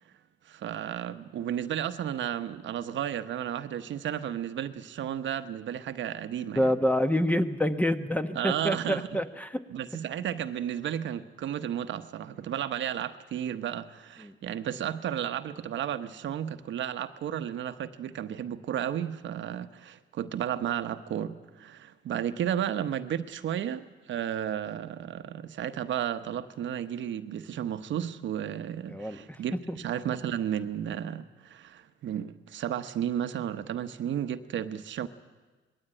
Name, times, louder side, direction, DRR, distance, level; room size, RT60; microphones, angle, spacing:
voice 1, 0.5-6.7 8.3-9.1 9.7-35.1, right 10 dB, 70° right, 10 dB, 1.0 m, -33 dB
voice 2, 6.6-9.6 14.2-14.3 28.9-29.4 29.7-29.8, equal, 5° left, 9 dB, 1.1 m, -27 dB
20.0 x 16.5 x 9.0 m, 1.3 s
cardioid pair, 90°, 20 cm